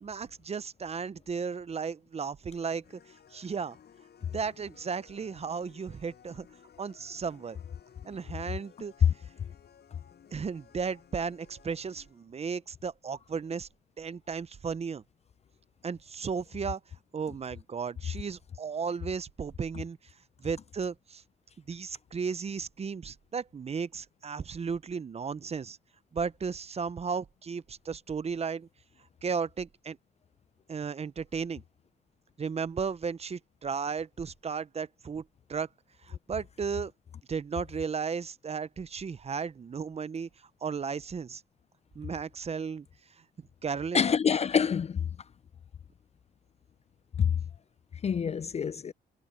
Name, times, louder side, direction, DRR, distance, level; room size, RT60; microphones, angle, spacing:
voice 1, 0.0-2.8 3.3-3.8 4.3-6.5 6.8-7.6 8.0-8.9 10.3-13.7 14.0-15.0 15.8-16.8 17.1-20.0 20.4-21.2 21.7-25.8 26.1-28.7 29.2-30.0 30.7-31.6 32.4-35.2 35.5-35.7 36.0-36.9 37.3-40.3 40.6-41.4 41.9-42.9 43.6-44.0, right 6 dB, 30° right, 0.6 m, -34 dB
sound 1, 2.8-12.3, left 8 dB, 55° left, 6.9 m, -58 dB
voice 2, 43.9-45.0 47.2-47.3 48.0-48.9, left 7 dB, 35° left, 0.4 m, -26 dB
cardioid pair, 90°, 20 cm